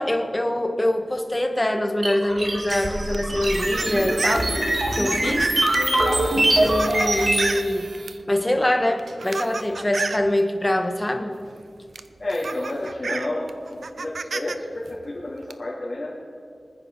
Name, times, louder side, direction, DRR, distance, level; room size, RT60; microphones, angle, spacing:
voice 1, 0.0-4.5 4.9-5.5 6.3-7.9 8.3-11.3, left 1 dB, 20° left, 4 dB, 1.5 m, -24 dB
sound 1, 2.0-7.5, right 1 dB, 55° right, 2.4 m, -23 dB
sound 2, 2.7-8.2 8.9-10.3 11.5-11.6 12.0-14.6 14.9-15.5, right 4 dB, 80° right, 0.6 m, -32 dB
voice 2, 5.7-6.2 12.2-16.1, left 1 dB, 45° left, -8 dB, 3.2 m, -30 dB
25.5 x 9.8 x 4.1 m, 2.2 s
wide cardioid pair, 80°, 0 cm